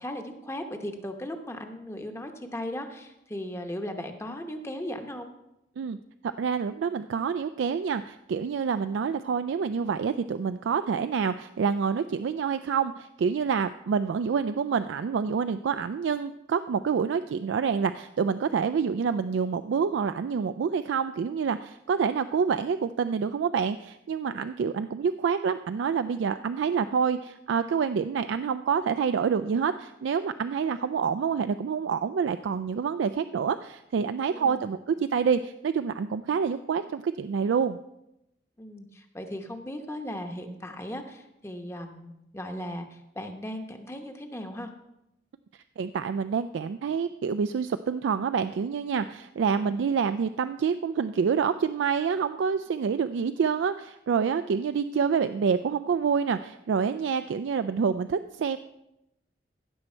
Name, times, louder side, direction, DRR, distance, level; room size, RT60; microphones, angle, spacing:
voice 1, 0.0-5.3 34.3-34.7 38.6-44.7 49.5-49.8, left 1 dB, 15° left, 5 dB, 0.8 m, -37 dB
voice 2, 6.2-37.8 45.8-58.6, right 6 dB, 80° right, 11 dB, 0.3 m, -27 dB
16.0 x 6.4 x 4.4 m, 0.86 s
head